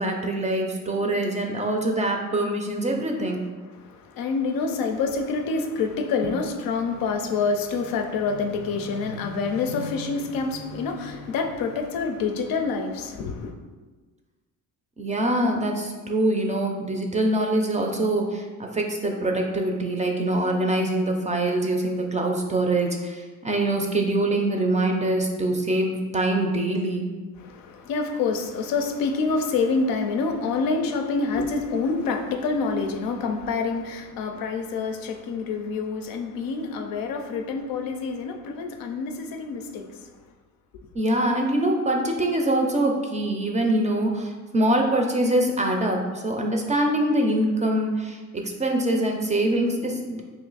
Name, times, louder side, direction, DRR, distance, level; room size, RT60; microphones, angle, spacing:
voice 1, 0.0-3.4 15.0-27.0 40.9-50.2, right 1 dB, 20° right, 0.4 m, -24 dB
voice 2, 3.8-13.5 27.4-39.9, left 4 dB, 75° left, 0.5 m, -27 dB
3.0 x 2.5 x 3.9 m
cardioid pair, 90°, 34 cm